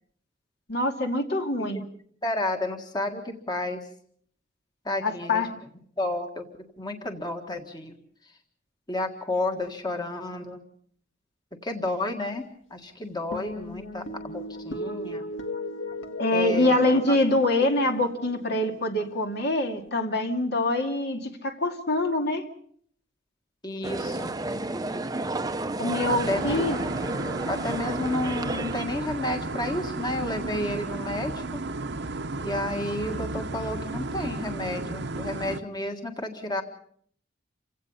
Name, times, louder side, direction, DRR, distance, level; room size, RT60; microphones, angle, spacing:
voice 1, 0.7-1.8 5.0-5.5 16.2-22.4 25.8-26.8, left 1 dB, 60° left, 4 dB, 2.4 m, -25 dB
voice 2, 2.2-3.9 4.9-5.4 6.0-6.5 6.8-8.0 8.2-8.3 8.9-10.6 11.6-12.4 12.7-15.3 16.3-16.8 17.1-17.2 23.6-24.3 26.1-26.8 27.5-31.6 32.4-36.6, left 2 dB, 20° left, 4 dB, 1.7 m, -31 dB
sound 1, 13.3-19.9, left 1 dB, 85° left, 1.7 m, -38 dB
sound 2, 23.8-29.0, right 2 dB, 20° right, 0.8 m, -32 dB
sound 3, 26.0-35.6, right 3 dB, 65° right, 1.0 m, -33 dB
28.5 x 17.0 x 5.6 m, 0.62 s
head